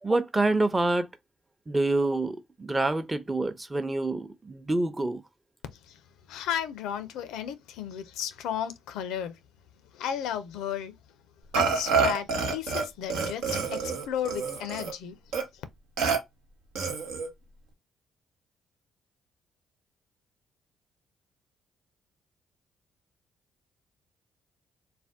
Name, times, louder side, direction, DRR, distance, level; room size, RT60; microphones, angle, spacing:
voice 1, 0.0-1.1 1.7-5.2, right 2 dB, 20° right, 0.6 m, -27 dB
voice 2, 6.3-9.4 9.9-10.9 11.6-15.2, left 9 dB, 85° left, 0.4 m, -34 dB
Burping eructation, 11.5-12.8 13.1-14.9 15.3-15.4 16.0-16.2 16.7-17.3, right 5 dB, 85° right, 0.8 m, -27 dB
2.5 x 2.1 x 3.4 m
supercardioid pair, 60°, 0 cm